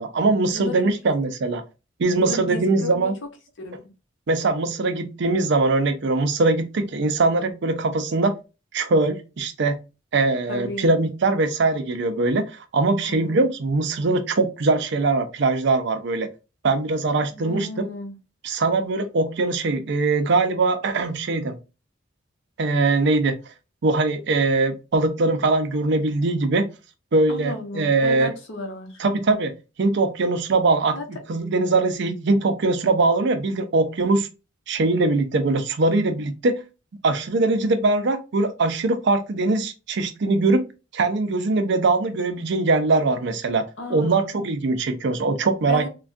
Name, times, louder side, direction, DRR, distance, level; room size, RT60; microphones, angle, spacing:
voice 1, 0.0-1.6 2.0-3.1 4.3-8.3 8.7-9.8 10.1-16.3 16.6-17.8 18.4-21.6 22.6-23.4 23.8-26.7 27.1-28.3 29.0-29.5 29.8-31.0 31.3-34.3 34.7-36.6 37.0-40.6 40.9-43.6 43.9-45.9, right 3 dB, 60° right, 0.5 m, -21 dB
voice 2, 0.5-0.9 2.1-3.1 3.6-3.8 10.5-10.9 13.1-13.4 17.3-18.1 27.3-29.0 30.9-31.0 43.8-44.3 45.7-45.9, left 1 dB, 65° left, 0.8 m, -33 dB
3.3 x 2.2 x 2.5 m
head